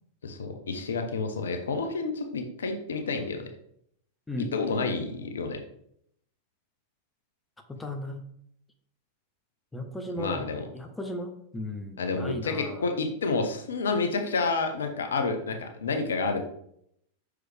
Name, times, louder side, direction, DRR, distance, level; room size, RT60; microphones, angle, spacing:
voice 1, 0.2-3.4 4.4-5.6 10.2-10.6 12.0-16.5, left 4 dB, 65° left, 6 dB, 0.7 m, -29 dB
voice 2, 7.8-8.2 9.7-12.9, left 1 dB, 10° left, 5 dB, 0.8 m, -36 dB
6.0 x 4.7 x 3.4 m, 0.71 s
figure-of-eight pair, 90°, 0 cm